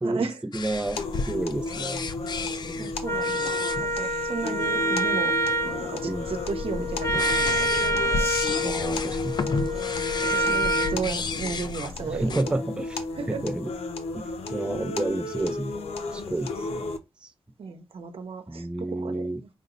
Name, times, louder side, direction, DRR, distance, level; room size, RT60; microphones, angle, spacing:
voice 1, 0.0-0.4 2.8-3.4 3.8-5.3 5.6-8.3 9.6-9.8 10.3-12.5 13.2-13.4 17.6-19.5, right 5 dB, 70° right, 0.9 m, -34 dB
sound 1, 0.5-12.4, left 3 dB, 45° left, 0.5 m, -33 dB
voice 2, 0.5-2.0 2.6-2.9 6.0-6.3 8.6-9.5 12.0-13.0 13.4-13.7 14.1-15.7 16.1-16.8 17.2-17.3 18.5-19.4, right 2 dB, 10° right, 0.5 m, -30 dB
sound 2, 1.0-17.0, left 3 dB, 85° left, 0.7 m, -34 dB
Wind instrument woodwind instrument, 3.0-11.0, right 1 dB, 30° left, 0.8 m, -27 dB
5.1 x 2.0 x 3.7 m
wide cardioid pair, 105°, 10 cm